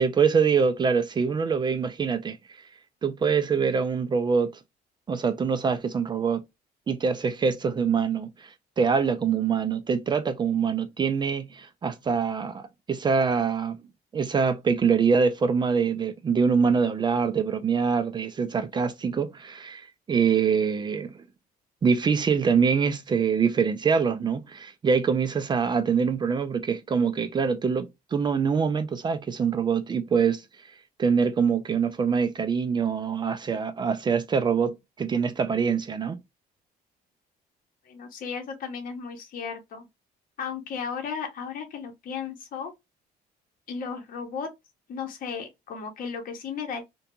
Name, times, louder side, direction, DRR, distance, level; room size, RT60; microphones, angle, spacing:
voice 1, 0.0-2.4 3.0-4.5 5.1-6.4 6.9-13.8 14.1-21.1 21.8-30.4 31.0-36.2, right 6 dB, 25° right, 0.3 m, -24 dB
voice 2, 37.9-39.9 40.4-42.7 43.7-44.5 44.9-46.8, left 6 dB, 55° left, 0.8 m, -35 dB
2.4 x 2.2 x 2.8 m
cardioid pair, 110°, 17 cm